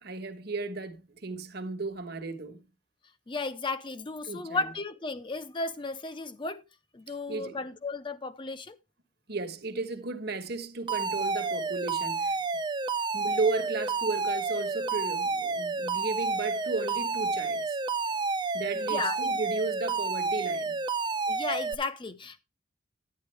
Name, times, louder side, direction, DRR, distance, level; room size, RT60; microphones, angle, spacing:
voice 1, 0.0-2.6 4.3-4.6 7.3-7.6 9.3-12.4 13.1-17.8 18.5-20.8, right 3 dB, 55° right, 1.3 m, -34 dB
voice 2, 3.3-6.6 6.9-8.8 18.7-19.3 21.3-22.4, left 3 dB, 25° left, 0.6 m, -34 dB
Alarm, 10.9-21.7, right 4 dB, 25° right, 0.5 m, -30 dB
10.5 x 9.6 x 3.3 m
head